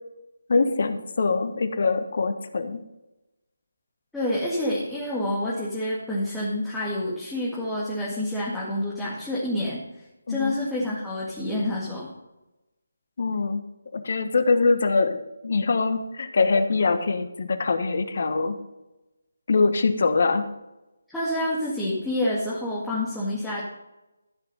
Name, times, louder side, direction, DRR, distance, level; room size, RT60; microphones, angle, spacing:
voice 1, 0.5-2.8 10.3-10.6 13.2-13.6 13.9-18.5 19.5-20.4, left 4 dB, 55° left, 10 dB, 1.3 m, -23 dB
voice 2, 4.1-9.8 10.3-12.1 21.1-23.6, left 1 dB, 5° left, -8 dB, 2.1 m, -28 dB
14.0 x 6.1 x 5.5 m, 0.97 s
figure-of-eight pair, 155°, 0 cm